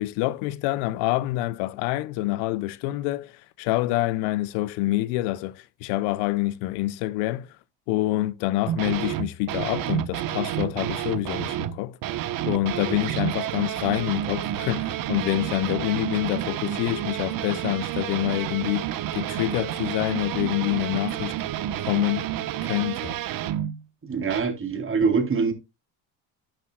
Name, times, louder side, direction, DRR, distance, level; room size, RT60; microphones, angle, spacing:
voice 1, 0.0-7.5 7.9-12.0 12.5-21.3 21.8-22.3 22.6-23.2, left 17 dB, 75° left, 0.8 m, -27 dB
sound 1, 8.7-11.8 12.0-23.8 24.3-24.4, right 12 dB, 55° right, 1.2 m, -30 dB
voice 2, 24.0-25.5, right 5 dB, 30° right, 3.5 m, -24 dB
11.5 x 10.0 x 2.4 m
supercardioid pair, 95°, 41 cm